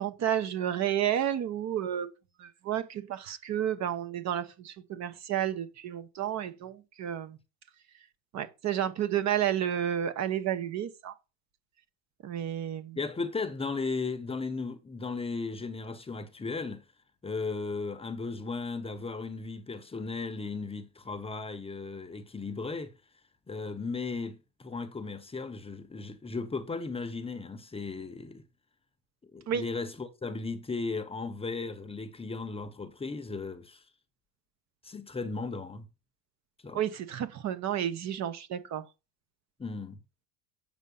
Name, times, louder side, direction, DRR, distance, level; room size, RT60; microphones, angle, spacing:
voice 1, 0.0-2.1 2.4-7.4 8.3-11.1 12.2-13.0 29.5-29.6 36.7-38.9, right 10 dB, 45° right, 1.1 m, -31 dB
voice 2, 12.9-16.8 17.2-22.9 23.5-28.4 29.3-33.8 34.8-35.9 36.6-36.8 39.6-40.0, left 4 dB, 15° left, 0.9 m, -36 dB
8.0 x 5.6 x 5.5 m
cardioid pair, 130°, 39 cm